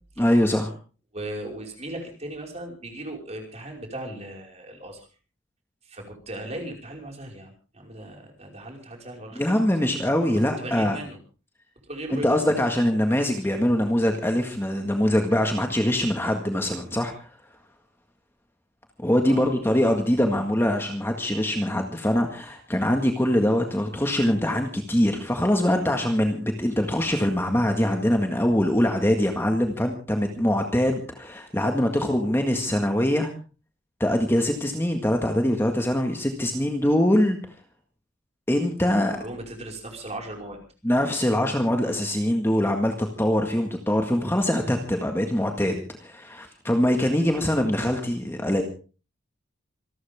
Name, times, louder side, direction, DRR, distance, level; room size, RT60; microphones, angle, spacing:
voice 1, 0.2-0.7 9.4-11.0 12.1-17.3 19.0-33.3 34.0-37.4 38.5-39.2 40.8-48.6, left 1 dB, 10° left, 4 dB, 1.8 m, -23 dB
voice 2, 1.1-5.1 5.8-9.9 10.3-11.2 11.8-12.4 13.3-13.4 19.3-19.9 39.1-40.6 47.2-47.4, right 1 dB, 35° right, 1 dB, 5.3 m, -38 dB
27.0 x 13.0 x 3.6 m, 0.37 s
head